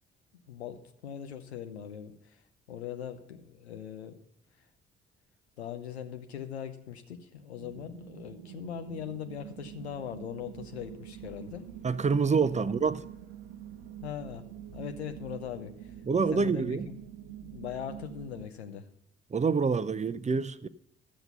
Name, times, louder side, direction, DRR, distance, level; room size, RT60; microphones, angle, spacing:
voice 1, 0.5-2.4 2.7-4.2 5.6-11.7 12.5-12.7 14.0-14.5 14.7-16.0 16.3-18.9, left 9 dB, 80° left, 0.9 m, -40 dB
sound 1, 7.6-18.5, right 10 dB, 70° right, 0.9 m, -46 dB
voice 2, 11.8-13.0 16.1-16.9 19.3-20.7, right 5 dB, 20° right, 0.6 m, -27 dB
12.5 x 7.9 x 5.5 m
figure-of-eight pair, 45°, 32 cm